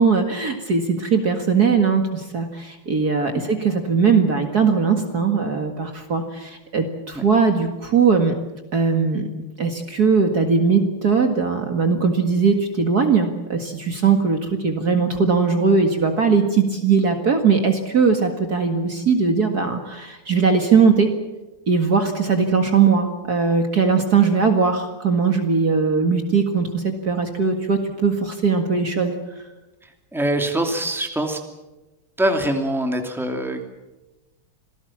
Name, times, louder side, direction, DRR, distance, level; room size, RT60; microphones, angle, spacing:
voice 1, 0.0-8.3 8.7-9.3 9.6-21.1 21.7-29.2, right 5 dB, 45° right, 5 dB, 2.3 m, -19 dB
voice 2, 30.1-31.4 32.2-33.6, right 1 dB, ahead, 4 dB, 2.6 m, -23 dB
27.0 x 18.5 x 7.4 m, 1.1 s
omnidirectional pair, 2.4 m